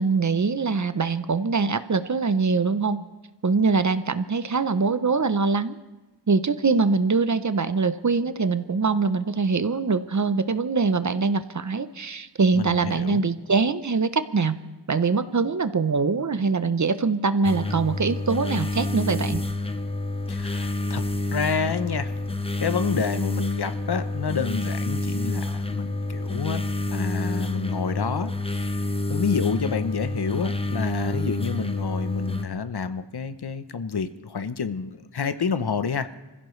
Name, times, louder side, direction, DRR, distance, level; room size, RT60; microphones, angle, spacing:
voice 1, 0.0-3.0 3.4-5.8 6.3-14.6 14.9-19.4, right 4 dB, 40° right, 12 dB, 0.7 m, -23 dB
voice 2, 12.5-13.2 20.3-21.1 21.3-22.1 22.6-28.7 29.1-36.1, left 6 dB, 60° left, 11 dB, 0.8 m, -29 dB
sound 1, 17.4-32.4, left 2 dB, 15° left, 0.8 m, -28 dB
25.5 x 15.5 x 3.2 m, 1.2 s
wide cardioid pair, 80°, 43 cm